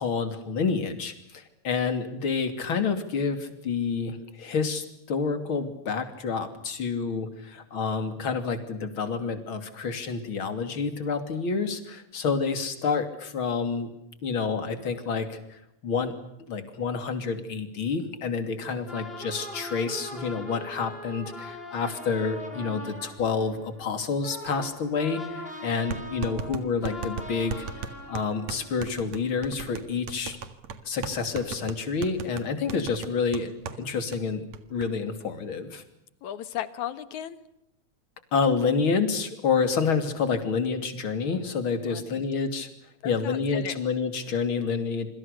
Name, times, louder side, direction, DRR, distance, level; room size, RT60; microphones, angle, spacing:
voice 1, 0.0-13.9 14.2-16.1 16.5-27.7 28.1-30.4 30.8-34.4 34.7-35.8 38.3-42.7 43.0-45.1, left 5 dB, 45° left, 9 dB, 3.5 m, -28 dB
sound 1, 18.9-29.4, left 1 dB, 20° left, 3.8 m, -41 dB
sound 2, 25.0-25.1 25.9-33.8 34.1-34.2 34.5-34.9, right 5 dB, 70° right, 3.0 m, -37 dB
voice 2, 36.2-37.4 41.9-42.3 43.0-43.8, left 11 dB, 80° left, 14 dB, 2.8 m, -36 dB
27.5 x 25.0 x 6.8 m, 0.81 s
omnidirectional pair, 3.3 m